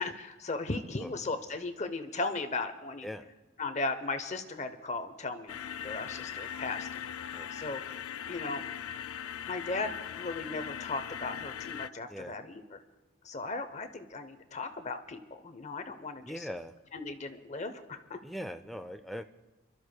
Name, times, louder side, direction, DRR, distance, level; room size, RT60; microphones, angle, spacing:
voice 1, 0.0-3.1 3.6-5.6 5.8-7.8 8.3-8.6 9.5-12.8 13.2-16.5 16.9-18.2, left 3 dB, 35° left, 9 dB, 0.7 m, -37 dB
sound 1, 5.5-11.9, left 9 dB, 85° left, 0.3 m, -40 dB
voice 2, 16.2-16.8 18.2-19.2, equal, ahead, 8 dB, 0.4 m, -40 dB
30.0 x 13.0 x 2.2 m, 1.2 s
head